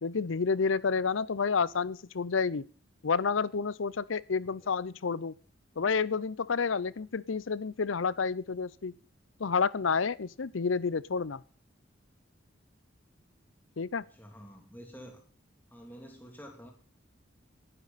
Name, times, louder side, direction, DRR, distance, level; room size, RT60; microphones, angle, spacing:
voice 1, 0.0-2.6 3.0-5.3 5.8-8.9 9.4-11.4 13.8-14.0, left 5 dB, 85° left, 0.6 m, -30 dB
voice 2, 14.1-15.2 15.7-16.7, equal, 10° left, 2.8 m, -49 dB
19.0 x 11.0 x 4.2 m
head